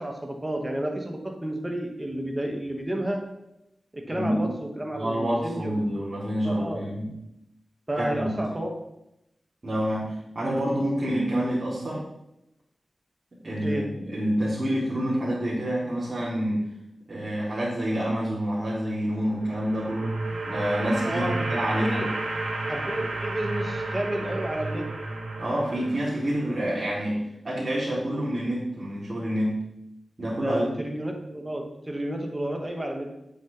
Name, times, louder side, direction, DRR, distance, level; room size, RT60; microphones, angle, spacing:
voice 1, 0.0-3.2 3.9-6.0 6.4-6.8 7.9-8.7 13.6-13.9 21.0-21.4 21.8-22.1 22.7-24.9 30.4-33.1, right 1 dB, 25° right, 2 dB, 2.2 m, -31 dB
voice 2, 4.1-4.4 4.9-7.1 8.0-8.5 9.6-12.0 13.4-16.6 17.1-20.2 20.5-22.1 25.4-27.2 27.4-29.5 30.2-30.7, equal, 50° right, -9 dB, 3.8 m, -27 dB
sound 1, 19.2-26.4, right 2 dB, 85° right, 2.1 m, -32 dB
10.5 x 7.9 x 3.6 m, 0.85 s
cardioid pair, 55°, 0 cm